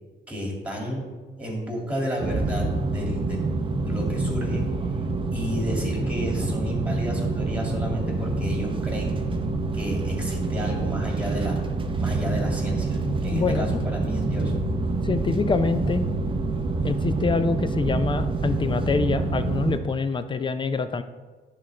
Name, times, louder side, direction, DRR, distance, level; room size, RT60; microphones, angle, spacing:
voice 1, 0.3-1.1 1.4-3.4 3.9-4.7 5.3-9.2 9.7-11.6 12.0-14.5, equal, 5° right, -1 dB, 2.1 m, -31 dB
sound 1, 2.2-19.8, right 3 dB, 25° right, 0.7 m, -27 dB
voice 2, 13.3-13.7 15.0-16.0 16.8-21.0, left 4 dB, 25° left, 11 dB, 0.4 m, -25 dB
10.5 x 3.9 x 3.2 m, 1.4 s
cardioid pair, 90°, 20 cm